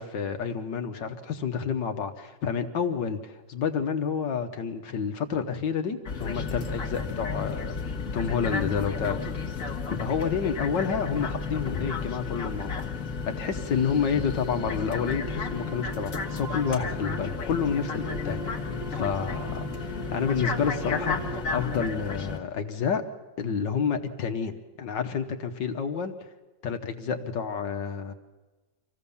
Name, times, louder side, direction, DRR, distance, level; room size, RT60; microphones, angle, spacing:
voice 1, 0.0-9.3 9.7-12.9 13.3-23.0 23.4-26.1 26.6-28.1, left 6 dB, 75° left, 6 dB, 1.8 m, -29 dB
sound 1, 6.1-22.4, left 5 dB, 45° left, 1.8 m, -33 dB
sound 2, 14.4-21.4, right 3 dB, 60° right, 3.8 m, -41 dB
25.5 x 15.0 x 7.0 m, 1.2 s
omnidirectional pair, 2.0 m